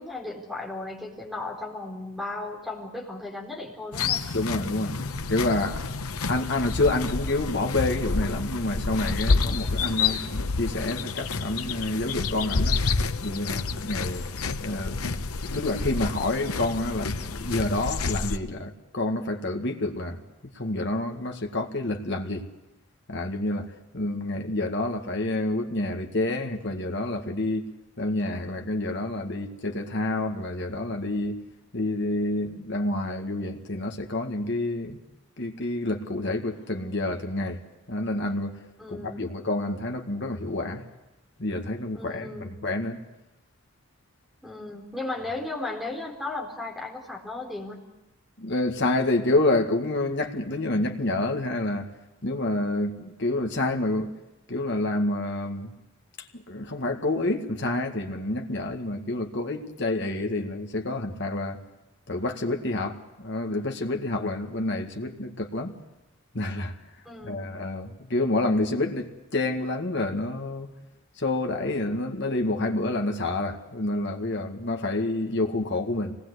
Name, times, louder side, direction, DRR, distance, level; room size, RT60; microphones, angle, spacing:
voice 1, 0.0-4.3 38.8-39.3 41.9-42.6 44.4-47.9 67.0-67.4, left 2 dB, ahead, 4.4 m, -35 dB
sound 1, 3.9-18.4, left 4 dB, 90° left, 1.0 m, -29 dB
voice 2, 4.3-5.0 5.3-5.9 6.3-12.8 13.2-14.2 14.6-15.0 15.4-20.2 20.5-22.5 23.1-27.7 28.0-31.4 31.7-35.0 35.4-37.6 37.9-38.5 38.9-40.8 41.4-43.0 48.4-51.9 52.2-54.1 54.5-55.7 56.3-61.6 62.1-65.7 66.3-66.8 67.2-70.7 71.2-76.1, left 2 dB, 55° left, 1.9 m, -28 dB
24.5 x 19.0 x 8.2 m
head